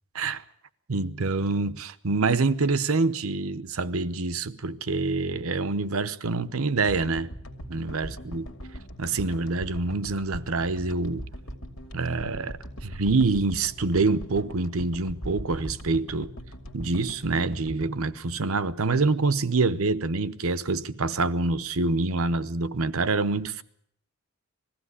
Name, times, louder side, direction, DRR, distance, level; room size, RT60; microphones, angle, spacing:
voice 1, 0.9-7.3 7.7-8.5 9.0-11.2 11.9-16.3 16.7-23.6, right 3 dB, 90° right, 0.9 m, -26 dB
sound 1, 6.9-19.2, equal, 75° left, 2.5 m, -41 dB
21.0 x 15.0 x 9.8 m
head